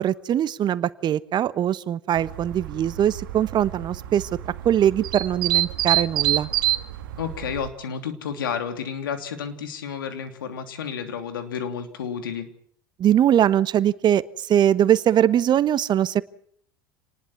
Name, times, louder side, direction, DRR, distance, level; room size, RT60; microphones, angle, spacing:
voice 1, 0.0-4.3 4.6-6.5 13.0-16.2, right 10 dB, 40° right, 16 dB, 1.2 m, -21 dB
sound 1, 2.2-7.7, right 14 dB, 75° right, 1.8 m, -27 dB
voice 2, 7.2-12.5, left 7 dB, 80° left, 7 dB, 3.1 m, -31 dB
28.0 x 20.0 x 6.1 m, 0.63 s
hypercardioid pair, 75°, 11 cm